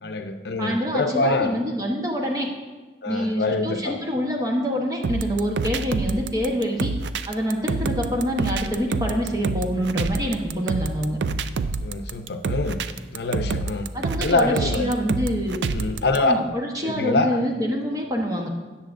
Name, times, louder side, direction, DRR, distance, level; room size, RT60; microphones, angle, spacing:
voice 1, 0.0-1.5 3.0-4.0 11.8-12.8 13.1-13.9 14.2-14.9 15.7-16.3 16.8-17.4, left 2 dB, 70° left, 6 dB, 0.6 m, -24 dB
voice 2, 0.6-2.5 3.1-6.9 7.3-11.2 13.9-15.6 16.2-18.5, equal, 20° right, 1 dB, 1.0 m, -26 dB
sound 1, 5.0-16.2, right 3 dB, 85° right, 0.4 m, -27 dB
17.0 x 7.2 x 2.6 m, 1.3 s
head